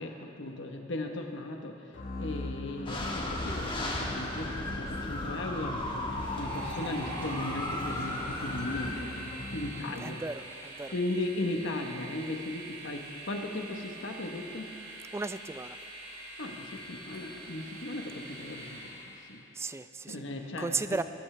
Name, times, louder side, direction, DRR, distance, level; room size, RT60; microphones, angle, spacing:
voice 1, 0.0-1.7 2.2-5.8 6.4-9.1 9.5-10.2 10.9-14.7 16.4-18.9 19.3-19.4 20.1-21.0, left 2 dB, 65° left, 3 dB, 1.1 m, -37 dB
sound 1, 1.9-10.2, left 2 dB, 45° left, 1.0 m, -41 dB
sound 2, 2.9-8.9, left 1 dB, 25° left, 1.5 m, -35 dB
Train, 5.9-19.4, right 2 dB, 90° right, 3.5 m, -45 dB
voice 2, 10.0-10.9 15.1-15.8 19.5-20.2 20.6-21.0, right 3 dB, 15° right, 12 dB, 0.3 m, -35 dB
20.5 x 13.0 x 3.3 m, 2.8 s
head